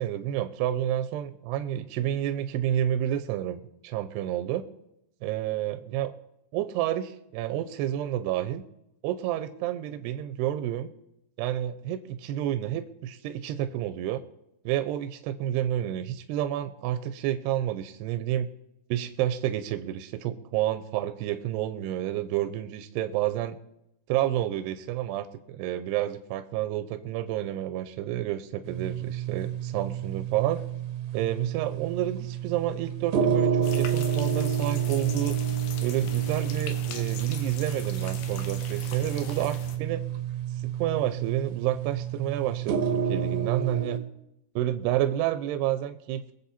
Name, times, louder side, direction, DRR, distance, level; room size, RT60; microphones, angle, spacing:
voice 1, 0.0-4.6 5.2-6.1 6.5-8.6 9.0-10.9 11.4-14.2 14.7-18.5 18.9-23.6 24.1-30.6 31.1-35.4 35.8-40.0 40.6-44.0 44.6-46.3, right 12 dB, 85° right, 9 dB, 2.7 m, -30 dB
sound 1, 28.6-44.0, right 8 dB, 65° right, 1.8 m, -29 dB
sound 2, 33.6-39.8, left 7 dB, 70° left, 2.1 m, -41 dB
23.0 x 7.9 x 4.2 m, 0.82 s
omnidirectional pair, 4.8 m